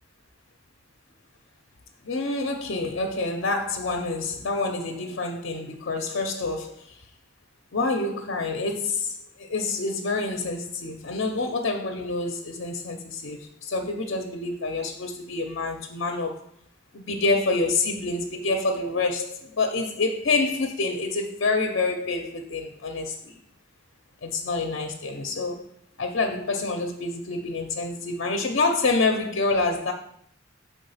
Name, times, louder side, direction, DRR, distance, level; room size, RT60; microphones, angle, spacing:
voice 1, 2.0-7.0 7.7-16.4 16.9-23.3 24.2-25.6 26.0-29.9, left 3 dB, 60° left, 3 dB, 0.6 m, -27 dB
5.6 x 3.6 x 5.5 m, 0.68 s
head